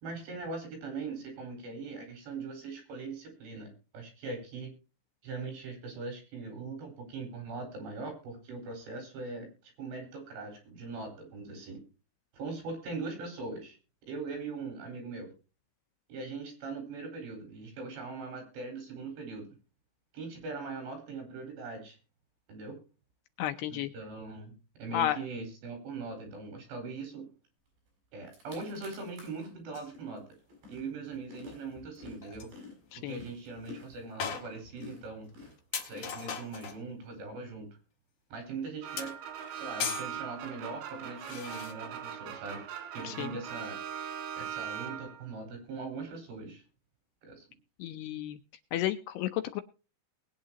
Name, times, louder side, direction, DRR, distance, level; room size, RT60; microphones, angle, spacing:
voice 1, 0.0-4.7 5.2-11.8 12.3-13.8 14.1-15.3 16.1-19.6 20.1-22.0 22.5-22.8 23.7-24.5 24.8-27.3 28.1-30.3 30.7-32.5 33.0-35.3 35.8-37.7 38.3-39.1 39.5-42.6 42.9-43.8 44.4-46.6 47.2-47.5, right 3 dB, 70° right, 5 dB, 6.9 m, -41 dB
voice 2, 23.4-23.9 24.9-25.2 32.9-33.2 43.0-43.3 47.8-48.4 48.7-49.6, left 12 dB, 80° left, 8 dB, 2.5 m, -32 dB
sound 1, 27.9-28.0 28.2-29.5 29.9-36.7, left 3 dB, 55° right, 8.4 m, -51 dB
sound 2, 29.7-29.9 32.0-32.1 32.2-32.6 33.1-33.2 33.7-33.8 34.2-34.9 35.3-35.4 35.7-36.9 39.0-40.1 41.2-41.7, left 7 dB, 50° left, 2.3 m, -38 dB
sound 3, 38.8-45.4, right 9 dB, 85° right, 4.3 m, -40 dB
20.5 x 9.1 x 2.9 m, 0.33 s
omnidirectional pair, 5.2 m